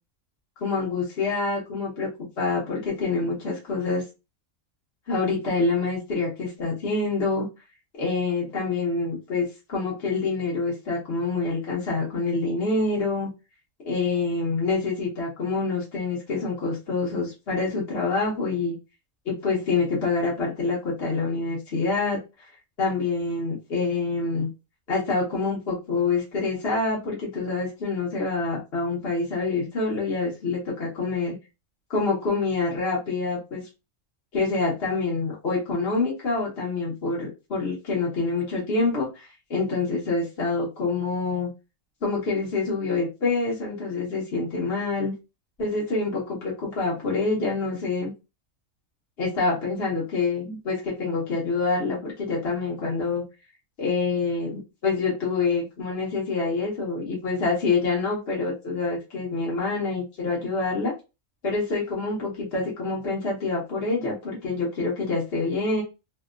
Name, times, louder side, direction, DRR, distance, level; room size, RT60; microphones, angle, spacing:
voice 1, 0.6-2.1 2.4-4.1 5.1-7.5 8.0-13.3 13.8-18.8 19.2-22.2 22.8-24.5 24.9-31.4 31.9-33.6 34.3-41.5 42.0-45.1 45.6-48.1 49.2-53.2 53.8-60.9 61.4-65.8, left 3 dB, 50° left, -5 dB, 1.3 m, -26 dB
3.3 x 2.3 x 2.4 m, 0.26 s
omnidirectional pair, 1.4 m